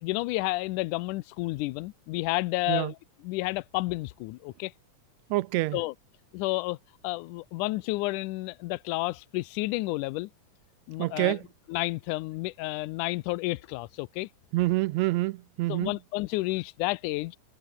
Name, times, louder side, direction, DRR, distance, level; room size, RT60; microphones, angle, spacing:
voice 1, 0.0-3.0 3.2-4.7 5.7-5.9 6.3-6.8 7.0-10.3 10.9-11.4 11.7-14.3 15.7-17.4, left 21 dB, 85° left, 2.1 m, -31 dB
voice 2, 5.3-5.8 11.0-11.4 14.5-15.9, right 18 dB, 85° right, 1.6 m, -27 dB
omnidirectional pair, 3.7 m